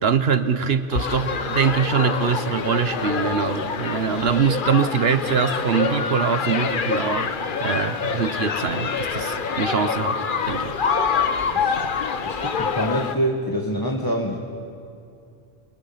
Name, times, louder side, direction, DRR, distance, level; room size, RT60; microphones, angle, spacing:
voice 1, 0.0-7.3 7.6-10.8, right 6 dB, 55° right, 10 dB, 1.1 m, -23 dB
sound 1, 0.9-13.2, left 5 dB, 45° left, 0.9 m, -26 dB
voice 2, 12.2-14.4, equal, 15° left, -1 dB, 1.5 m, -26 dB
29.5 x 23.5 x 5.8 m, 2.5 s
omnidirectional pair, 1.3 m